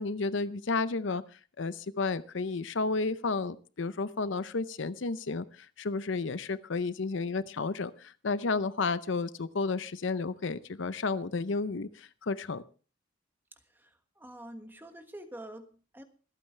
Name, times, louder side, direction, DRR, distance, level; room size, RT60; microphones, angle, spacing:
voice 1, 0.0-12.6, left 4 dB, 65° left, 15 dB, 0.6 m, -32 dB
voice 2, 13.7-16.0, right 1 dB, 10° right, 7 dB, 1.4 m, -47 dB
25.5 x 8.9 x 3.3 m, 0.37 s
head